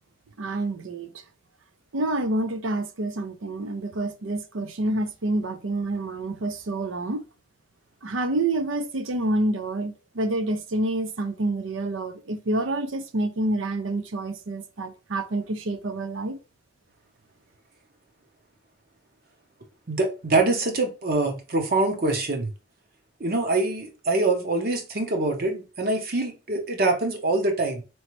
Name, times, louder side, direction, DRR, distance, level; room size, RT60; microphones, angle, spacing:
voice 1, 0.4-1.1 1.9-7.2 8.0-16.4, right 2 dB, 85° right, 0.6 m, -28 dB
voice 2, 19.9-22.5 23.2-27.8, right 2 dB, 50° right, 0.9 m, -24 dB
4.1 x 3.1 x 3.1 m
head